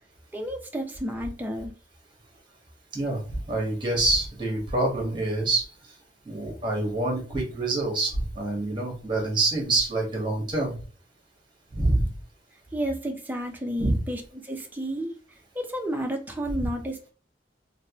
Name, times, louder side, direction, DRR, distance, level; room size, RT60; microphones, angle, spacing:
voice 1, 0.3-1.7 12.7-15.1 15.5-17.1, equal, 10° right, 2 dB, 0.7 m, -31 dB
voice 2, 2.9-5.6 6.2-10.7 11.7-12.1 13.8-13.9 16.6-16.7, right 2 dB, 25° right, 0 dB, 1.4 m, -26 dB
3.1 x 2.9 x 3.0 m, 0.37 s
head